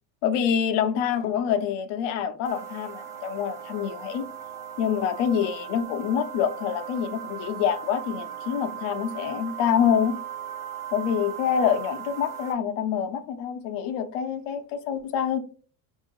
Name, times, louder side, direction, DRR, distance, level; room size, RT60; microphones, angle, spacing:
voice 1, 0.2-4.3 4.8-10.2 10.9-15.4, left 8 dB, 60° left, 0.7 m, -26 dB
sound 1, 2.4-12.5, right 9 dB, 5° right, 0.6 m, -38 dB
5.6 x 2.7 x 3.0 m
cardioid pair, 150°, 49 cm